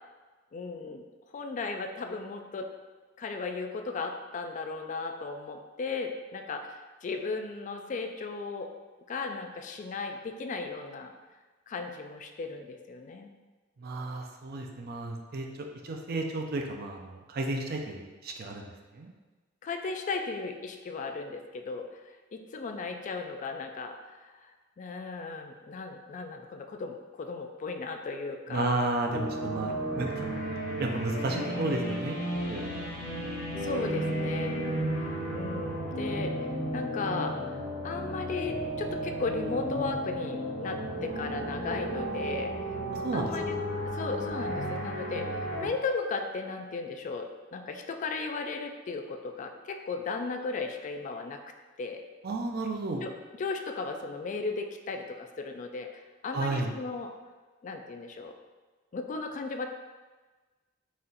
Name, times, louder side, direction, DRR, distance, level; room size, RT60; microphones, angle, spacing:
voice 1, 0.5-1.0 1.3-2.7 3.2-8.7 9.1-11.1 11.7-13.3 19.6-21.8 22.3-24.5 24.8-28.8 33.6-34.7 35.0-36.3 36.7-42.5 43.1-43.5 43.9-45.3 45.6-51.4 51.8-52.0 53.0-53.1 53.4-55.9 56.2-57.1 57.6-58.3 58.9-59.7, left 4 dB, 40° left, 5 dB, 0.3 m, -36 dB
voice 2, 13.8-19.1 28.5-32.2 32.5-32.8 42.9-43.3 52.2-53.0 56.3-56.7, right 2 dB, 50° right, 3 dB, 0.5 m, -33 dB
sound 1, 29.1-45.7, right 1 dB, 60° left, 1.1 m, -33 dB
4.1 x 2.4 x 3.9 m, 1.3 s
head